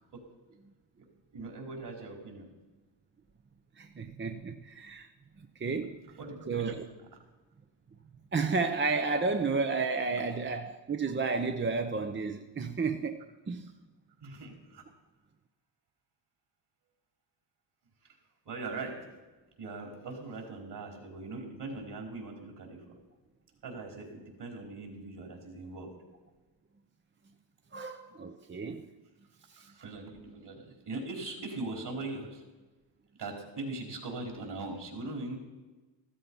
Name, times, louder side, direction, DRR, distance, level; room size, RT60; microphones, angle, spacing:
voice 1, 1.3-2.5 6.2-6.8 14.2-14.8 18.4-19.0 19.6-23.0 23.6-25.9 29.6-32.4 33.2-35.4, right 3 dB, 55° right, 4.7 m, -40 dB
voice 2, 3.8-5.1 5.6-6.1 6.5-6.8 8.3-13.7 27.7-28.9 29.5-29.7, right 4 dB, 25° right, 0.8 m, -32 dB
14.0 x 14.0 x 5.6 m
cardioid pair, 80°, 49 cm